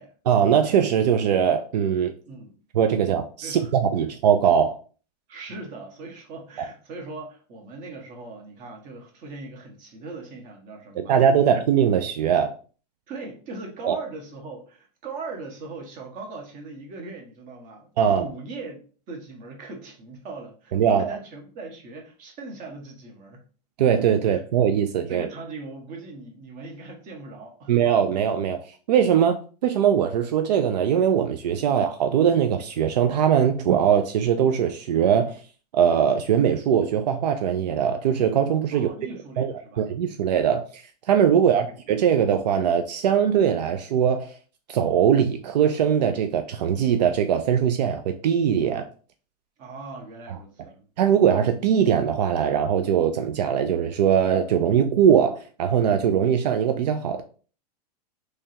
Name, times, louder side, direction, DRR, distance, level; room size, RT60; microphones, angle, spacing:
voice 1, 0.3-2.1 2.7-4.8 6.6-6.7 11.0-12.5 13.8-14.0 18.0-18.3 20.7-21.2 23.8-25.3 27.7-28.6 28.9-35.4 35.7-38.9 39.4-44.3 44.7-48.9 51.0-57.2, right 8 dB, 85° right, 0.4 m, -21 dB
voice 2, 5.3-11.2 13.1-23.4 24.2-24.4 25.1-27.7 38.7-39.9 41.4-41.8 49.6-50.9, right 3 dB, 40° right, 1.2 m, -40 dB
3.4 x 3.2 x 2.8 m
hypercardioid pair, 120°, 21 cm